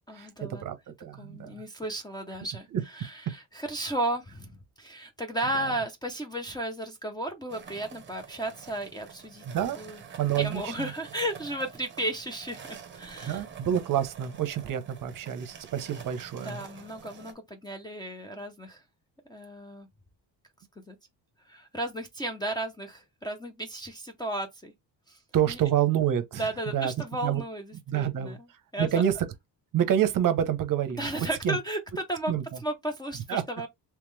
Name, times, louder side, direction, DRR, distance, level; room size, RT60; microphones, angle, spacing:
voice 1, 0.1-0.6 1.2-9.5 9.8-10.0 10.4-13.4 16.4-18.8 19.3-19.9 20.9-21.0 21.5-24.7 25.1-25.2 25.5-25.6 26.4-28.5 28.7-29.0 30.9-32.3 32.6-33.7, right 1 dB, 10° left, 0.5 m, -34 dB
voice 2, 0.6-1.5 2.7-2.8 9.4-9.8 10.2-10.9 13.2-16.6 25.3-26.4 26.7-26.9 27.2-27.4 27.9-28.4 28.8-29.2 29.7-31.6 32.3-32.4 33.3-33.4, right 10 dB, 50° right, 0.8 m, -27 dB
sound 1, 7.5-17.3, right 7 dB, 25° right, 0.9 m, -47 dB
3.6 x 3.1 x 3.2 m
cardioid pair, 155°, 42 cm